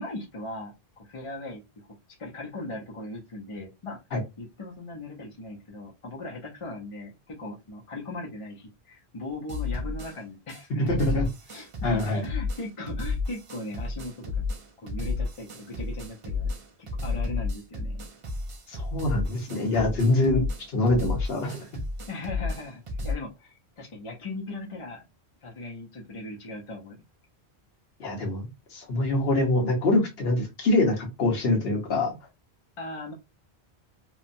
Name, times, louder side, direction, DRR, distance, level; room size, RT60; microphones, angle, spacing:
voice 1, 0.0-1.6 2.2-4.0 4.4-11.2 11.5-14.5 14.8-16.5 16.8-18.1 22.1-25.0 25.4-27.0 32.8-33.1, left 2 dB, 40° left, -2 dB, 0.5 m, -38 dB
sound 1, 9.5-10.2 10.5-23.2, left 3 dB, 50° right, 0.4 m, -32 dB
voice 2, 10.9-11.3 11.8-12.2 18.7-20.4 20.7-21.6 28.0-32.1, left 2 dB, 70° left, 1 dB, 1.1 m, -24 dB
2.9 x 2.1 x 2.5 m, 0.23 s
omnidirectional pair, 1.1 m